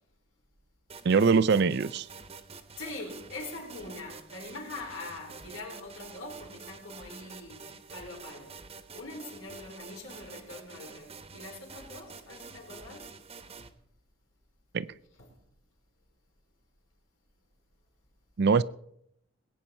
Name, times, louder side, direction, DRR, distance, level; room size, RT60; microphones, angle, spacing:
sound 1, 0.9-13.7, right 5 dB, 30° right, 1.0 m, -48 dB
voice 1, 1.0-2.1 14.7-14.9 18.4-18.6, right 5 dB, 55° right, 0.4 m, -22 dB
voice 2, 2.8-8.6 8.9-13.2 15.2-15.4, left 2 dB, 80° left, 4.3 m, -43 dB
21.0 x 8.8 x 4.4 m
head